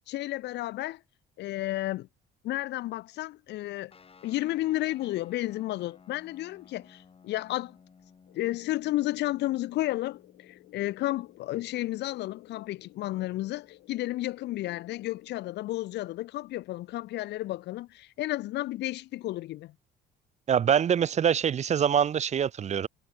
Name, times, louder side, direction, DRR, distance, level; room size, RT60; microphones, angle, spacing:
voice 1, 0.1-1.0 1.4-2.1 2.4-3.9 4.2-7.8 8.4-10.2 10.5-19.7, left 16 dB, 70° left, 0.5 m, -32 dB
sound 1, 3.9-14.8, left 5 dB, 30° left, 4.3 m, -59 dB
sound 2, 8.3-15.6, left 19 dB, 90° left, 7.2 m, -56 dB
voice 2, 20.5-22.9, right 8 dB, 40° right, 0.7 m, -24 dB
cardioid pair, 110°, 19 cm